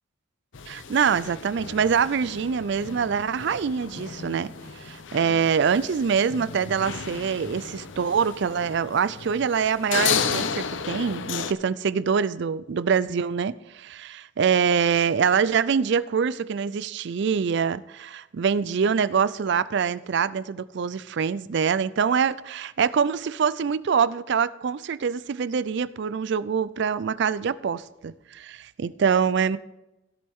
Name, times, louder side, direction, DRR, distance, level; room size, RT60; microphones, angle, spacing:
sound 1, 0.5-11.5, left 6 dB, 70° left, 0.7 m, -33 dB
voice 1, 0.7-29.6, right 6 dB, 60° right, 0.4 m, -25 dB
17.0 x 7.7 x 3.6 m
head